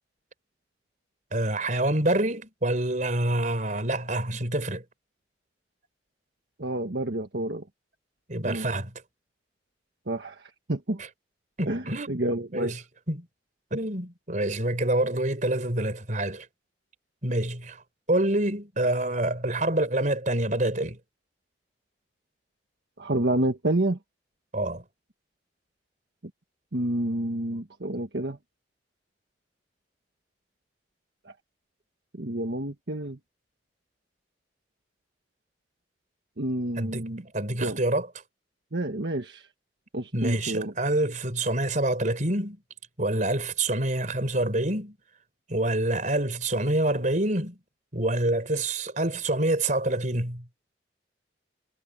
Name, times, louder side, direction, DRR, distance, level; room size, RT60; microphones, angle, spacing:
voice 1, 1.3-4.8 8.3-8.9 11.6-12.1 12.5-12.8 13.1-13.3 13.7-16.5 17.2-17.8 18.1-21.0 24.5-24.8 36.8-38.1 40.1-42.6 43.0-45.0 45.5-47.6 47.9-50.4, right 1 dB, 45° right, 4.6 m, -26 dB
voice 2, 6.6-7.6 8.4-8.7 10.1-11.0 11.7-12.7 23.0-24.0 26.7-28.4 31.2-31.3 32.1-33.2 36.4-37.2 37.6-37.8 38.7-39.5 39.9-40.7, right 1 dB, 70° right, 1.5 m, -29 dB
head